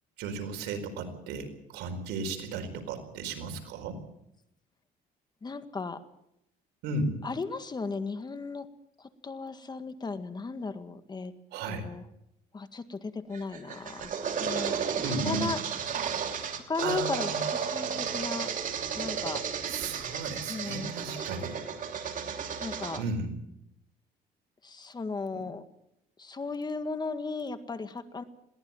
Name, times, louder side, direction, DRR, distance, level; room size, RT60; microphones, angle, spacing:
voice 1, 0.2-4.0 6.8-7.2 11.5-11.9 15.0-15.5 16.8-17.4 19.7-21.6 23.0-23.3, right 3 dB, 90° right, 6 dB, 4.6 m, -34 dB
voice 2, 5.4-6.0 7.2-8.7 9.0-11.3 11.7-12.0 12.5-14.1 14.4-15.6 16.5-18.5 18.9-19.4 20.5-20.9 22.6-23.0 24.6-25.6 26.2-28.2, left 4 dB, 25° left, 9 dB, 1.8 m, -36 dB
sound 1, 13.3-23.0, right 7 dB, 50° right, 3.0 m, -33 dB
22.0 x 17.5 x 7.2 m, 0.79 s
cardioid pair, 110°, 17 cm